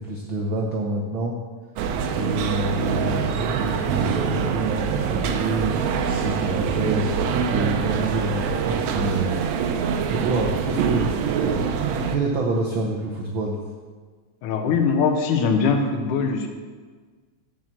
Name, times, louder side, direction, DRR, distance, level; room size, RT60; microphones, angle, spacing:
voice 1, 0.0-1.4 2.1-7.2 7.5-9.4 10.1-13.6, right 2 dB, 90° right, 0 dB, 1.0 m, -27 dB
sound 1, 1.8-12.2, right 6 dB, 75° right, 1.8 m, -24 dB
voice 2, 14.4-16.5, left 5 dB, 90° left, 5 dB, 2.4 m, -21 dB
7.7 x 6.0 x 7.4 m, 1.5 s
omnidirectional pair, 3.5 m